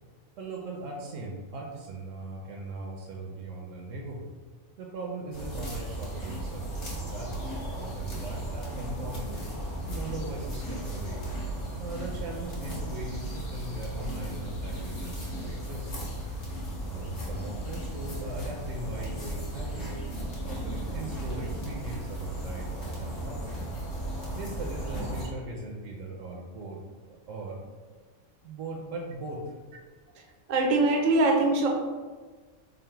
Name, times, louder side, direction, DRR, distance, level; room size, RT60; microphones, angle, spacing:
voice 1, 0.4-4.3 4.8-9.4 9.9-11.2 11.8-15.9 16.8-20.1 20.4-23.6 24.3-27.6 28.4-29.5, right 2 dB, 80° right, -1 dB, 0.9 m, -39 dB
sound 1, 5.3-25.3, right 1 dB, 65° left, 1.3 m, -35 dB
voice 2, 30.5-31.7, right 2 dB, 55° right, 1 dB, 0.4 m, -22 dB
3.7 x 2.0 x 4.4 m, 1.4 s
omnidirectional pair, 1.3 m